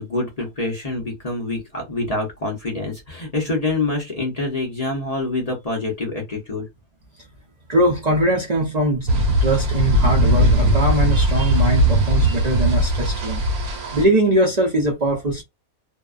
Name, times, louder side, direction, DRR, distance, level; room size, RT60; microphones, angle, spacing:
voice 1, 0.0-6.7, left 2 dB, 40° left, 0.6 m, -26 dB
voice 2, 7.7-9.1 9.4-15.4, right 1 dB, 45° right, 0.5 m, -21 dB
sound 1, 9.1-14.0, equal, 85° right, 1.3 m, -19 dB
2.7 x 2.2 x 2.4 m
omnidirectional pair, 1.5 m